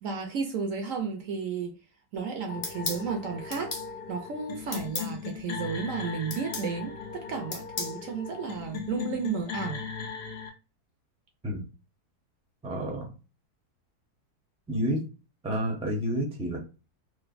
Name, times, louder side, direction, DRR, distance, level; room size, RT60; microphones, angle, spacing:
voice 1, 0.0-1.7 2.1-3.7 4.1-9.9, right 5 dB, 70° right, 0.8 m, -33 dB
sound 1, 2.5-10.5, left 6 dB, 90° left, 0.5 m, -39 dB
pen click, 2.6-3.0 3.5-3.9 4.7-5.1 6.3-6.7 7.5-8.0, left 4 dB, 55° left, 0.8 m, -34 dB
voice 2, 12.6-13.1 14.7-15.0 15.4-16.6, equal, 10° right, 0.3 m, -29 dB
3.2 x 2.2 x 2.4 m
omnidirectional pair, 1.7 m